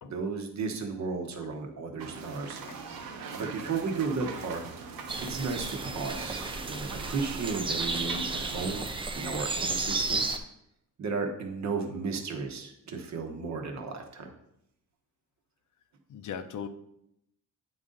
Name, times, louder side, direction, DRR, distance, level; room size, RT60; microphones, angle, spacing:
voice 1, 0.0-3.0 3.3-4.6 5.2-8.9 9.1-10.3 11.0-14.3, right 4 dB, 55° right, 4 dB, 1.0 m, -34 dB
sound 1, 2.0-8.8, right 5 dB, 75° right, 1.0 m, -42 dB
sound 2, 5.1-10.4, right 3 dB, 15° right, 0.4 m, -33 dB
voice 2, 16.1-16.7, left 8 dB, 60° left, 9 dB, 0.6 m, -38 dB
8.9 x 4.0 x 3.8 m, 0.78 s
wide cardioid pair, 165°, 34 cm